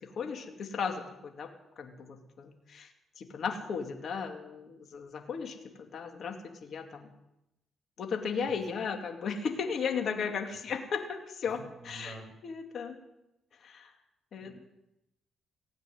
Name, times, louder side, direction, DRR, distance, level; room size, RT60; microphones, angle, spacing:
voice 1, 0.0-1.5 1.8-2.9 3.2-6.4 6.6-7.1 8.0-11.6 11.8-13.0 13.6-13.9 14.3-14.5, left 6 dB, 55° left, 3 dB, 2.4 m, -36 dB
voice 2, 11.8-12.3 14.3-14.5, right 2 dB, 35° right, 3 dB, 6.6 m, -48 dB
16.5 x 8.7 x 9.5 m, 0.89 s
cardioid pair, 90°, 0 cm